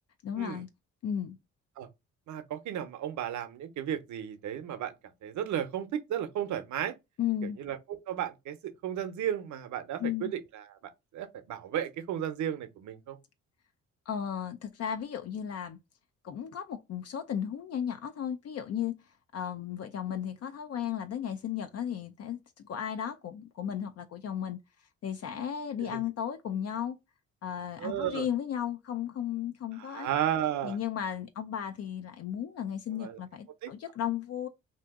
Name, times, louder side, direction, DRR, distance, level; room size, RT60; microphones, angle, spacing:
voice 1, 0.2-0.7 1.0-1.4 7.2-7.6 10.0-10.3 14.1-15.8 16.2-18.9 19.3-24.6 25.0-27.0 27.4-30.1 30.6-34.5, left 9 dB, 55° left, 0.5 m, -35 dB
voice 2, 2.3-4.9 5.2-6.9 7.6-10.6 11.1-13.2 25.8-26.0 27.8-28.2 29.8-30.8 33.0-33.2 33.6-33.7, right 10 dB, 75° right, 0.7 m, -34 dB
2.7 x 2.6 x 3.5 m
cardioid pair, 90°, 30 cm